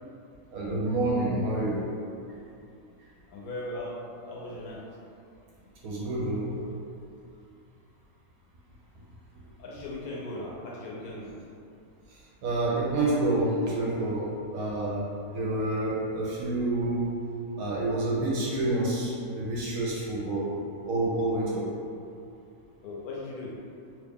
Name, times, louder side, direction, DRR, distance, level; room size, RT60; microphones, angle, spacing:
voice 1, 0.5-1.9 5.8-6.7 12.4-17.1 17.6-20.6 20.9-21.7, right 2 dB, 70° right, -6 dB, 1.0 m, -28 dB
voice 2, 3.3-4.0 4.2-4.8 9.6-11.3 22.8-23.5, left 2 dB, 70° left, -4 dB, 1.0 m, -38 dB
3.0 x 2.4 x 3.5 m, 2.5 s
omnidirectional pair, 1.8 m